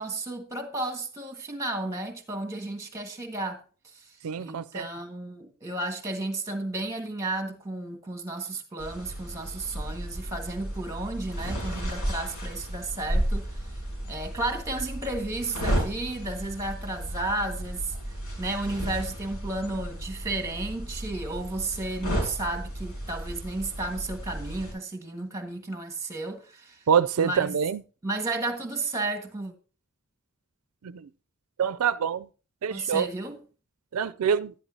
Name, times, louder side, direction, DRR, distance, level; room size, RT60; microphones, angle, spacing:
voice 1, 0.0-3.6 3.9-4.0 4.4-13.5 14.1-17.9 18.4-26.8 27.2-27.6 28.0-29.5 32.7-33.4, right 2 dB, 15° right, 1.6 m, -33 dB
voice 2, 4.2-4.8 26.9-27.8 30.8-31.1 31.6-32.3 32.6-33.1 33.9-34.5, right 7 dB, 85° right, 0.4 m, -25 dB
sound 1, 8.8-24.7, right 1 dB, 75° left, 5.2 m, -33 dB
11.5 x 11.0 x 2.8 m
head